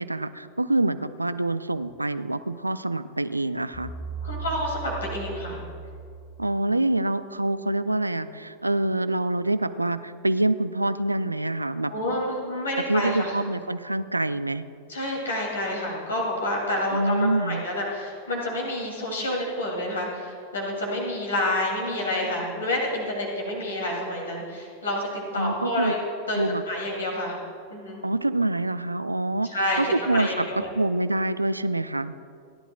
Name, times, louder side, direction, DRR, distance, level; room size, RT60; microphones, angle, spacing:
voice 1, 0.0-3.9 6.4-11.9 12.9-14.7 16.9-17.6 25.4-25.9 26.4-26.6 28.0-29.5 29.8-30.5 30.8-32.1, right 2 dB, 85° right, 13 dB, 0.4 m, -26 dB
sound 1, 3.7-6.9, right 5 dB, 15° left, 1.6 m, -37 dB
voice 2, 4.2-5.6 11.9-13.3 14.9-26.0 26.3-26.4 26.7-27.4 27.7-28.0 29.4-30.7, left 1 dB, 70° left, -1 dB, 2.7 m, -28 dB
29.0 x 11.0 x 2.3 m, 2.3 s
figure-of-eight pair, 90°, 0 cm